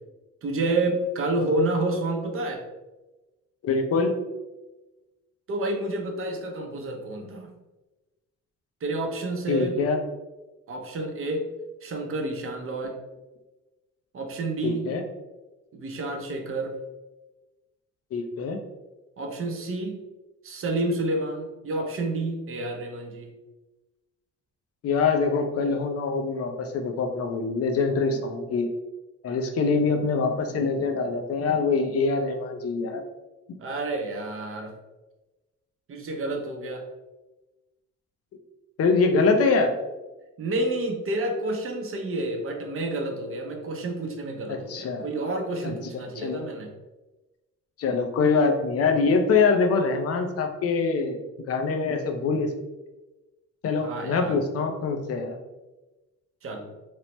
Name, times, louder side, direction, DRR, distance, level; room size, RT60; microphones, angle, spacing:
voice 1, 0.4-2.6 5.5-7.5 8.8-9.8 10.7-11.5 11.8-13.0 14.1-14.9 15.7-16.8 19.2-20.0 20.4-23.3 33.6-34.7 35.9-36.8 40.4-46.7 53.8-54.4 56.4-56.7, right 2 dB, 45° right, 2 dB, 0.6 m, -29 dB
voice 2, 3.6-4.2 9.5-10.0 14.6-15.0 18.1-18.6 24.8-28.7 29.2-33.0 33.5-33.6 38.8-39.7 44.5-45.1 45.6-45.8 46.2-46.4 47.8-52.5 53.6-55.4, left 4 dB, 50° left, 5 dB, 0.5 m, -24 dB
3.0 x 2.0 x 3.0 m, 1.1 s
cardioid pair, 90°, 30 cm